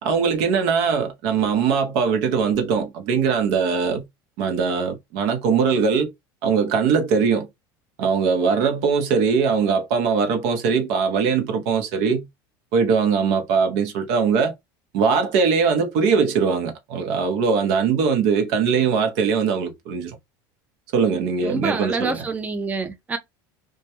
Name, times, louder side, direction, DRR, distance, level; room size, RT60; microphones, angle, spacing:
voice 1, 0.0-4.0 4.4-6.1 6.4-7.5 8.0-12.3 12.7-14.5 14.9-20.2 20.9-22.2, right 6 dB, 70° right, 0.7 m, -21 dB
voice 2, 21.4-23.2, right 3 dB, 15° right, 0.5 m, -27 dB
2.2 x 2.2 x 2.8 m
supercardioid pair, 100°, 11 cm